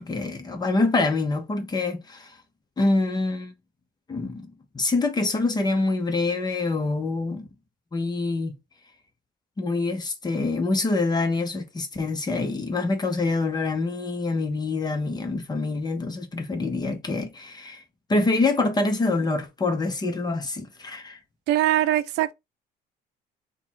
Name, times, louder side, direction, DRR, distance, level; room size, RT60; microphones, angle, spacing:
voice 1, 0.0-2.4 2.8-3.5 4.1-7.5 7.9-8.5 9.6-17.8 18.1-21.2, left 3 dB, 25° left, 1.0 m, -26 dB
voice 2, 21.5-22.3, right 13 dB, 90° right, 0.5 m, -22 dB
3.7 x 2.4 x 4.3 m
cardioid pair, 110°, 17 cm